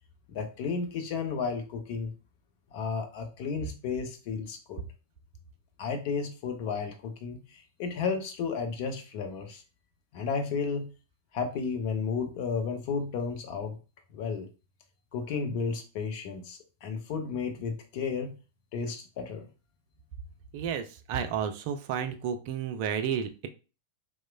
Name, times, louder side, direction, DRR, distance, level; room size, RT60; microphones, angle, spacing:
voice 1, 0.3-2.1 2.7-4.8 5.8-9.6 10.1-10.9 11.3-13.8 14.1-14.5 15.1-18.3 18.7-19.4, left 5 dB, 45° left, 4 dB, 0.6 m, -33 dB
voice 2, 20.5-23.5, right 8 dB, 45° right, 8 dB, 0.4 m, -32 dB
2.9 x 2.1 x 2.3 m, 0.33 s
figure-of-eight pair, 90°, 0 cm